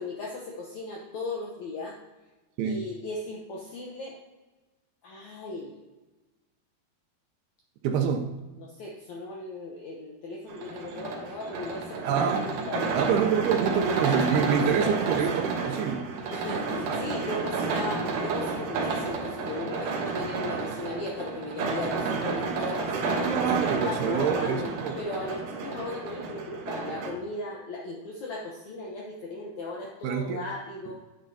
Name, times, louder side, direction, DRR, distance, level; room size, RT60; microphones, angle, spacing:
voice 1, 0.0-2.0 2.6-4.2 5.0-5.9 8.6-12.2 12.7-13.0 14.2-14.3 14.7-15.0 16.3-23.4 23.8-30.9, left 2 dB, 75° left, -2 dB, 1.7 m, -37 dB
voice 2, 7.8-8.3 12.1-12.5 12.9-16.1 23.2-25.0 30.0-30.4, right 7 dB, 85° right, 3 dB, 2.6 m, -26 dB
sound 1, 10.5-27.1, right 4 dB, 65° right, 2.3 m, -31 dB
10.5 x 7.7 x 2.8 m, 1.2 s
omnidirectional pair, 4.6 m